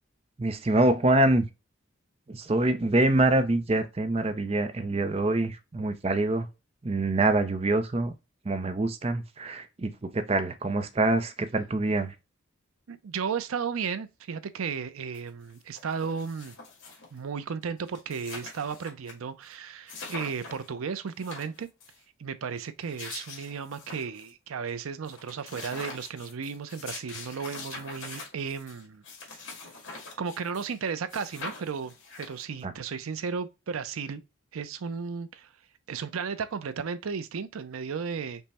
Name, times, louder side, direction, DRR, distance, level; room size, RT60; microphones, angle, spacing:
voice 1, 0.4-1.5 2.3-6.5 6.8-8.1 8.5-12.1 32.6-32.7, right 2 dB, 30° right, 0.4 m, -25 dB
voice 2, 12.9-16.5 17.1-21.7 22.2-29.0 29.3-29.4 30.2-34.2 34.5-35.5 35.9-38.5, right 6 dB, 90° right, 0.5 m, -34 dB
sound 1, 15.1-15.2 15.5-17.2 17.6-17.7 17.9-19.1 19.4-19.5 19.9-20.7 21.1-22.0 22.6-24.3 24.7-24.8 25.0-30.8 31.1-32.6, left 3 dB, 75° left, 1.9 m, -43 dB
5.4 x 2.1 x 4.2 m
head